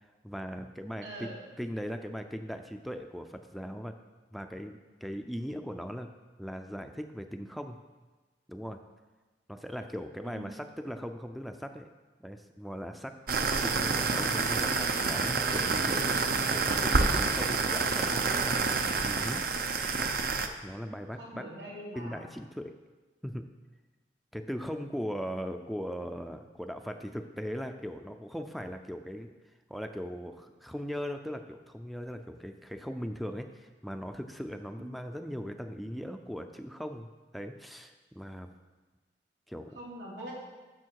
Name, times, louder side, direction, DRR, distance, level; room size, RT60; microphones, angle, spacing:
voice 1, 0.0-1.3 1.6-3.9 4.3-6.1 6.4-7.8 8.5-8.8 9.5-11.9 12.2-13.2 13.6-16.1 16.4-18.1 18.4-18.7 19.0-19.5 20.6-21.4 22.0-22.8 23.2-23.5 24.3-29.3 29.7-37.1 37.3-38.5 39.5-39.7, equal, ahead, 6 dB, 0.4 m, -39 dB
voice 2, 1.0-1.4 10.2-10.5 17.3-17.8 21.2-22.3 34.8-34.9 39.7-40.3, right 1 dB, 85° right, -5 dB, 3.3 m, -43 dB
sound 1, 13.3-20.5, right 4 dB, 55° right, 0.7 m, -28 dB
14.0 x 6.6 x 4.7 m, 1.3 s
head